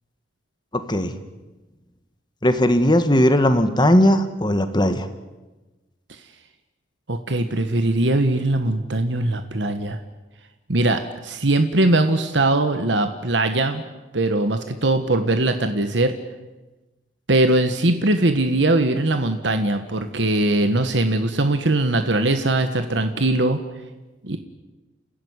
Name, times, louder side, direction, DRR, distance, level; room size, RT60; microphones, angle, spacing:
voice 1, 0.7-1.1 2.4-5.1, left 1 dB, 25° left, 9 dB, 1.6 m, -18 dB
voice 2, 7.1-10.0 10.7-13.8 14.1-16.1 17.3-23.6 24.2-24.4, right 2 dB, 75° right, 8 dB, 1.5 m, -21 dB
29.5 x 16.0 x 9.8 m, 1.1 s
head